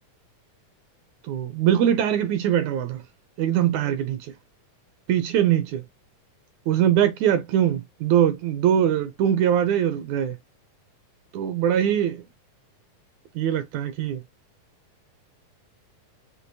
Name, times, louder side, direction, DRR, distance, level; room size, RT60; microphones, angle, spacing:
voice 1, 1.3-3.0 3.4-4.3 5.1-5.8 6.7-10.4 11.3-12.2 13.4-14.2, right 10 dB, 80° right, 1.7 m, -22 dB
6.1 x 2.8 x 2.6 m
omnidirectional pair, 3.8 m